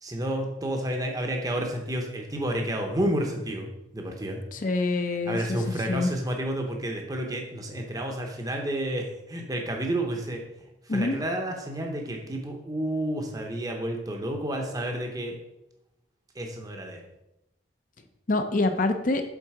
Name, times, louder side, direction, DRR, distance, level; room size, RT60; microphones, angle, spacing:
voice 1, 0.0-4.4 5.3-10.4 10.9-15.4 16.3-17.0, right 1 dB, 20° right, 2 dB, 0.8 m, -30 dB
voice 2, 4.5-6.1 10.9-11.2 18.3-19.2, left 2 dB, 45° left, 7 dB, 0.7 m, -26 dB
7.3 x 3.8 x 4.9 m, 0.88 s
head